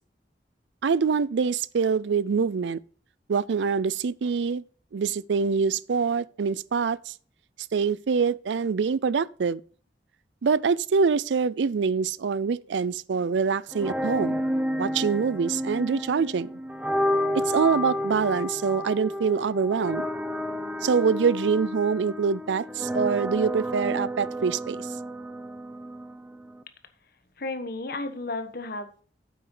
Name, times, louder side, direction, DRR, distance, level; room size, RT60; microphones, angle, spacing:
voice 1, 0.8-2.8 3.3-4.6 4.9-7.1 7.7-9.6 10.4-14.4 14.8-16.5 17.3-20.0 20.8-24.9, right 5 dB, 85° right, 0.4 m, -25 dB
sound 1, 13.7-26.6, equal, 10° right, 0.8 m, -31 dB
voice 2, 27.4-29.0, left 2 dB, 60° left, 1.3 m, -33 dB
9.4 x 7.7 x 3.8 m
head